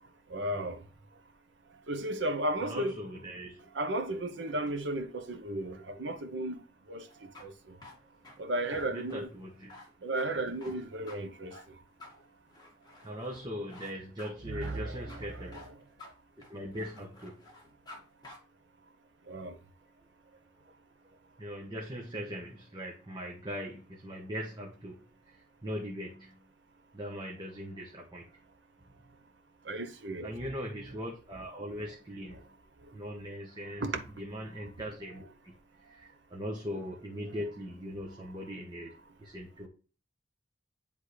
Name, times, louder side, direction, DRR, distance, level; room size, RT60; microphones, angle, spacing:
voice 1, 0.3-0.8 1.9-2.9 3.7-6.6 6.9-7.8 8.4-9.3 10.0-11.6 14.5-15.6 19.3-19.6 29.6-30.3 33.8-34.0, right 1 dB, 70° right, 1.0 m, -34 dB
voice 2, 2.6-3.6 8.9-9.7 13.0-15.5 16.5-17.4 21.4-25.3 25.6-26.3 26.9-28.2 30.2-32.4 32.9-33.8 34.2-35.5 35.9-38.9 39.2-39.7, equal, 25° right, 1.1 m, -40 dB
sound 1, 7.1-18.0 18.2-18.4, left 2 dB, 20° left, 1.8 m, -51 dB
10.0 x 3.6 x 3.3 m
head